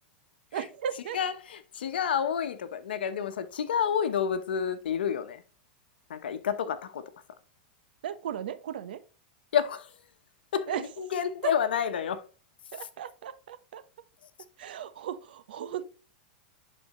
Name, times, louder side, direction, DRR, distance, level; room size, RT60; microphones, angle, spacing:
voice 1, 0.5-1.2 8.0-9.0 10.7-10.8 11.4-11.5 12.7-13.8 14.6-16.0, right 9 dB, 80° right, 0.9 m, -36 dB
voice 2, 1.1-5.4 6.1-7.0 9.5-10.0 10.5-12.2, left 8 dB, 85° left, 1.0 m, -29 dB
10.5 x 4.3 x 3.0 m
hypercardioid pair, 125°, 5 cm